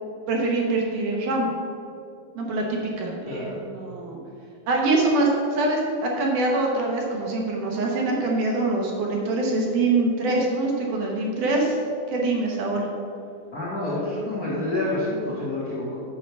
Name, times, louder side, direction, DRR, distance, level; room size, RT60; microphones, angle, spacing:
voice 1, 0.3-1.5 2.4-4.2 4.7-11.8 12.1-12.9, right 2 dB, 65° right, -1 dB, 2.3 m, -24 dB
voice 2, 3.3-3.6 13.5-16.0, left 2 dB, 65° left, -8 dB, 0.9 m, -28 dB
8.6 x 4.7 x 6.9 m, 2.5 s
omnidirectional pair, 4.4 m